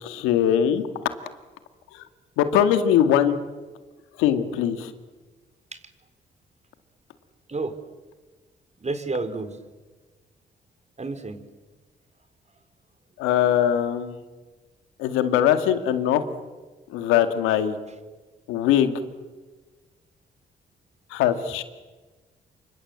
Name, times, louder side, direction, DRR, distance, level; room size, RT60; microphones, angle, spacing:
voice 1, 0.0-0.8 1.9-2.0 2.4-3.4 4.2-4.9 13.2-14.2 15.0-16.2 16.9-17.8 18.5-19.0 21.1-21.6, left 10 dB, 85° left, 9 dB, 2.0 m, -21 dB
voice 2, 8.8-9.6 11.0-11.4 17.9-18.0, right 3 dB, 35° right, 10 dB, 4.4 m, -30 dB
28.0 x 25.5 x 7.9 m, 1.3 s
hypercardioid pair, 50°, 20 cm